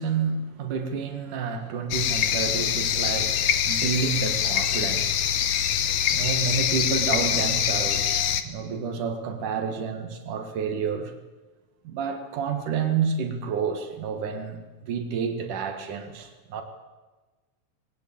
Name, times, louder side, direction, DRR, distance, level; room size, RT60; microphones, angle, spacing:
voice 1, 0.0-5.2 6.1-11.1 11.8-16.6, right 6 dB, 90° right, 6 dB, 3.3 m, -29 dB
sound 1, 1.9-8.4, left 9 dB, 65° left, 2.1 m, -24 dB
21.5 x 18.5 x 8.8 m, 1.2 s
omnidirectional pair, 3.5 m